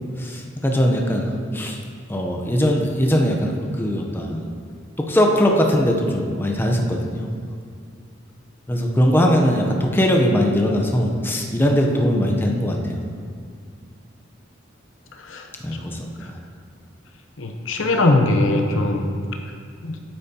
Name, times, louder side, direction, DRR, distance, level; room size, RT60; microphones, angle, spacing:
voice 1, 0.2-1.8 2.1-4.5 5.0-7.3 8.7-13.0 15.6-16.4, equal, 10° left, 1 dB, 0.7 m, -20 dB
voice 2, 17.4-19.1 19.8-19.9, left 2 dB, 85° left, 3 dB, 0.8 m, -20 dB
8.9 x 8.4 x 2.8 m, 2.2 s
head